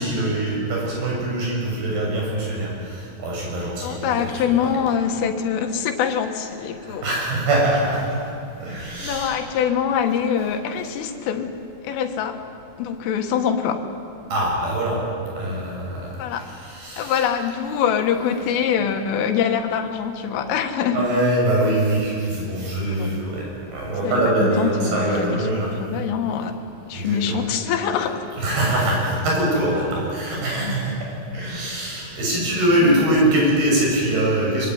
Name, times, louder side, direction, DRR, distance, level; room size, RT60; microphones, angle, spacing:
voice 1, 0.0-4.7 6.8-8.2 8.6-9.3 14.3-15.0 15.3-17.3 20.9-25.8 26.9-27.4 28.4-34.7, right 1 dB, 50° right, -2 dB, 9.0 m, -23 dB
voice 2, 3.8-7.1 9.0-11.6 11.8-12.4 12.8-13.9 16.2-16.5 17.0-21.1 22.9-23.3 24.0-26.6 26.9-28.2 32.8-33.1, left 7 dB, 85° left, 5 dB, 4.3 m, -24 dB
24.5 x 24.0 x 9.6 m, 2.5 s
omnidirectional pair, 5.6 m